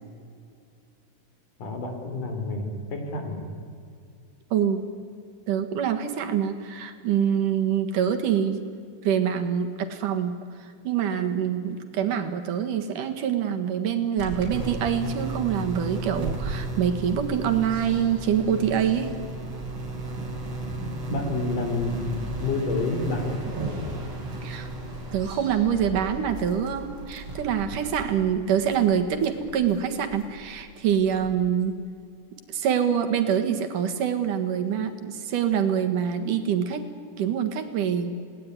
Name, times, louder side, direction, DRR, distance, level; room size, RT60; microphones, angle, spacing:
voice 1, 1.6-3.4 21.1-22.1 22.4-23.4, left 3 dB, 80° left, 5 dB, 5.1 m, -29 dB
voice 2, 4.5-4.8 5.5-8.6 9.0-19.1 24.4-24.7 25.1-31.8 32.5-36.9 37.2-38.2, right 8 dB, 85° right, 6 dB, 3.2 m, -25 dB
sound 1, 14.2-31.4, right 2 dB, 40° right, 5.2 m, -35 dB
29.0 x 18.5 x 9.6 m, 2.4 s
omnidirectional pair, 3.7 m